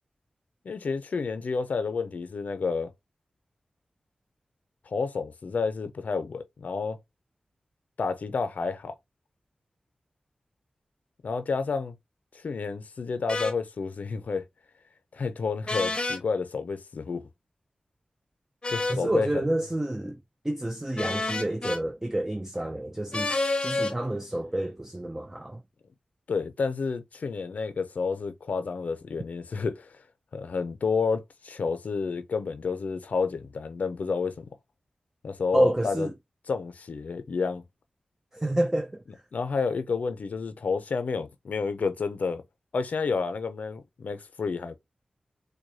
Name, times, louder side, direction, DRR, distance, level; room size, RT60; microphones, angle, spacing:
voice 1, 0.6-2.9 4.9-7.0 8.0-8.9 11.2-11.9 12.3-14.5 15.1-17.3 18.7-19.4 26.3-30.0 30.3-34.4 35.2-36.1 36.5-37.6 39.3-42.4 42.7-44.8, left 4 dB, 80° left, 0.5 m, -30 dB
sound 1, 13.3-13.5 15.7-16.2 18.6-19.0 21.0-21.8 23.1-23.9, left 2 dB, 35° left, 0.7 m, -29 dB
voice 2, 18.9-20.2 20.4-25.6 35.5-36.1 38.3-39.0, right 1 dB, 15° right, 0.4 m, -29 dB
4.6 x 2.2 x 2.6 m
wide cardioid pair, 65°, 3 cm